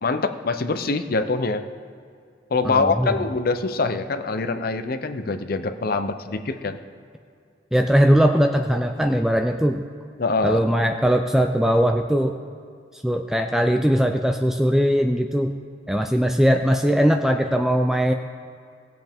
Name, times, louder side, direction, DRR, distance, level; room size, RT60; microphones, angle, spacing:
voice 1, 0.0-1.6 2.5-6.8 10.2-10.6, left 3 dB, 50° left, 9 dB, 0.6 m, -24 dB
voice 2, 2.6-3.1 7.7-9.9 10.4-12.4 12.9-15.5 15.9-18.1, equal, ahead, 4 dB, 0.3 m, -20 dB
17.5 x 7.7 x 3.6 m, 2.4 s
head